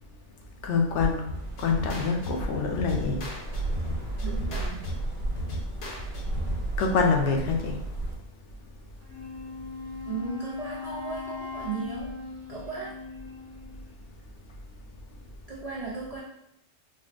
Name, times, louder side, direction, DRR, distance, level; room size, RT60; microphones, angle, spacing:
voice 1, 0.6-1.2 1.6-3.2 6.8-7.8, left 4 dB, 80° left, 2 dB, 0.9 m, -25 dB
sound 1, 1.3-6.9, equal, 55° left, 0.8 m, -36 dB
sound 2, 1.3-8.2, right 2 dB, 45° right, 1.3 m, -34 dB
voice 2, 4.2-4.8 10.1-12.2 12.5-13.0 15.5-16.2, right 4 dB, 75° right, -4 dB, 0.3 m, -36 dB
Wind instrument woodwind instrument, 9.0-13.9, left 5 dB, 90° right, 1.0 m, -39 dB
3.8 x 2.1 x 2.4 m, 0.78 s
omnidirectional pair, 1.2 m